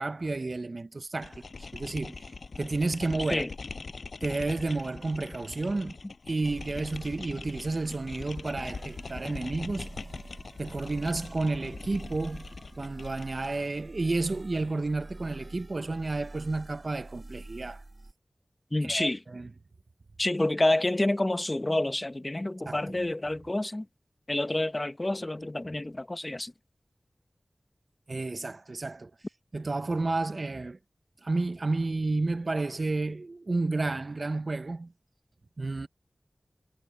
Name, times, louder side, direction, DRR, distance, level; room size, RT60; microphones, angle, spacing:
voice 1, 0.0-2.3 2.6-3.4 4.2-5.9 6.3-9.9 10.6-12.4 12.8-17.8 18.8-19.5 22.6-23.0 28.1-29.1 29.5-30.8 31.2-34.9 35.6-35.9, right 3 dB, 60° right, 0.8 m, -31 dB
sound 1, 1.2-13.6, left 4 dB, 90° left, 7.0 m, -42 dB
sound 2, 6.4-18.1, right 2 dB, 40° right, 4.1 m, -47 dB
voice 2, 18.7-19.2 20.2-23.8 24.3-26.5, left 1 dB, 30° left, 1.2 m, -28 dB
wide cardioid pair, 55°, 0 cm